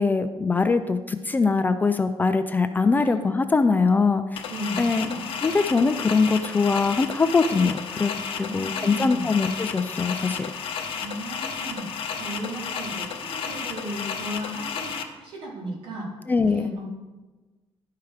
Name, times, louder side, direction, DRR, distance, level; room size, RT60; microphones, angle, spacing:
voice 1, 0.0-4.4 4.8-8.1 8.4-10.5 16.3-16.7, left 4 dB, 20° left, 9 dB, 0.3 m, -22 dB
sound 1, 4.4-15.0, left 6 dB, 70° left, 0.8 m, -32 dB
voice 2, 4.5-5.3 8.4-9.3 11.0-11.9 12.2-16.1 16.5-16.8, equal, 65° right, -4 dB, 3.3 m, -35 dB
11.5 x 4.6 x 4.9 m, 1.2 s
cardioid pair, 160°, 10 cm